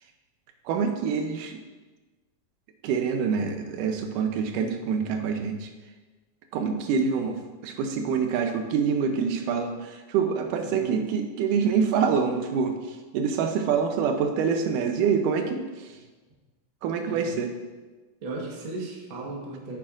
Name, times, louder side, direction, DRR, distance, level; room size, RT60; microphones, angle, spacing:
voice 1, 0.7-1.6 2.8-5.7 6.5-15.7 16.8-17.5, right 6 dB, 85° right, 6 dB, 2.3 m, -26 dB
voice 2, 10.4-11.0 17.1-17.3 18.2-19.8, right 2 dB, 55° right, -2 dB, 1.5 m, -36 dB
8.6 x 8.4 x 2.5 m, 1.3 s
omnidirectional pair, 3.7 m